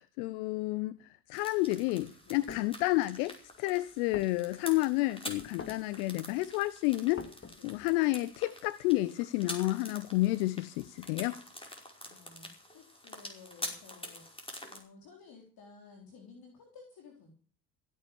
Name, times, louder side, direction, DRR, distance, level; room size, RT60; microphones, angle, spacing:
voice 1, 0.2-1.0 1.3-7.2 7.6-11.3, left 19 dB, 65° left, 0.8 m, -30 dB
sound 1, 1.3-14.8, left 1 dB, 10° left, 5.3 m, -46 dB
sound 2, 2.2-2.7 3.4-3.5 3.9-4.8 5.4-5.9 6.4-6.5 6.7-7.8, left 5 dB, 25° left, 2.4 m, -45 dB
voice 2, 12.0-17.3, left 4 dB, 50° left, 4.1 m, -55 dB
16.0 x 10.0 x 7.2 m
hypercardioid pair, 65°, 47 cm